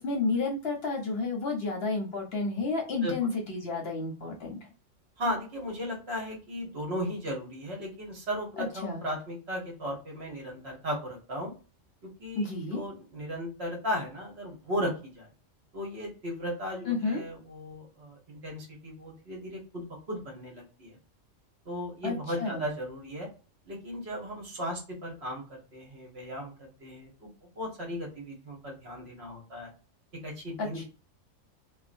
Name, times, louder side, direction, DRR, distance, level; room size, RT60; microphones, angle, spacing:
voice 1, 0.0-4.7 8.6-9.0 12.4-12.8 16.9-17.2 22.0-22.6 30.6-30.8, left 3 dB, 55° left, 1 dB, 0.8 m, -31 dB
voice 2, 5.2-11.5 12.0-15.3 15.7-21.0 21.6-23.3 23.7-27.3 27.6-29.7 30.2-30.8, equal, 55° right, -1 dB, 1.2 m, -36 dB
2.6 x 2.3 x 2.4 m, 0.35 s
omnidirectional pair, 1.3 m